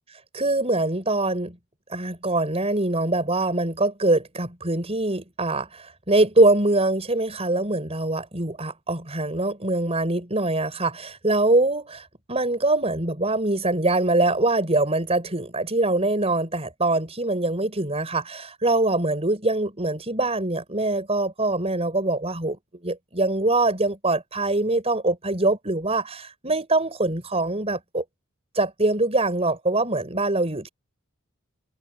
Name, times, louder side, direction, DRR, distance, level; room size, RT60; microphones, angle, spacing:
voice 1, 0.3-1.6 1.9-22.6 22.8-28.0 28.5-30.7, right 2 dB, 30° right, 5.7 m, -23 dB
head